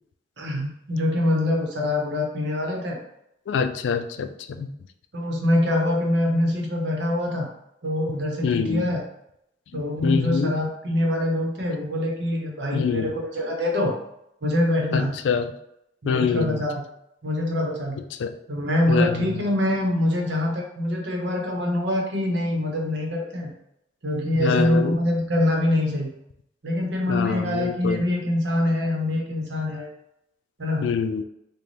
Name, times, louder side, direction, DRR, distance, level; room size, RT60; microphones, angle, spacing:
voice 1, 0.4-3.0 5.1-7.5 7.8-9.0 9.7-13.9 14.4-15.1 16.0-16.7 17.2-18.0 18.5-23.5 24.0-26.1 26.6-29.9 30.6-30.9, left 1 dB, 65° right, 0 dB, 0.9 m, -24 dB
voice 2, 3.5-4.7 8.4-8.9 9.7-10.5 12.7-13.1 14.9-15.5 16.1-16.6 18.2-18.3 18.9-19.4 24.4-25.0 27.1-28.0 30.8-31.2, left 6 dB, 75° left, 9 dB, 0.3 m, -25 dB
4.0 x 2.2 x 3.2 m, 0.79 s
head